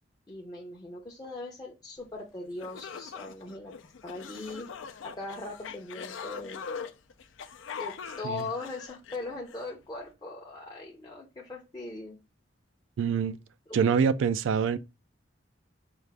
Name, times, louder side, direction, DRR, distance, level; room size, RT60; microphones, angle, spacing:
voice 1, 0.3-3.7 4.0-4.7 5.0-6.6 7.8-12.2 13.7-13.8, left 2 dB, 20° left, 0.6 m, -40 dB
sound 1, 2.2-2.3 2.6-9.7, left 6 dB, 80° left, 0.4 m, -42 dB
voice 2, 13.0-13.4 13.7-14.8, right 6 dB, 85° right, 0.3 m, -25 dB
4.7 x 2.4 x 3.3 m
head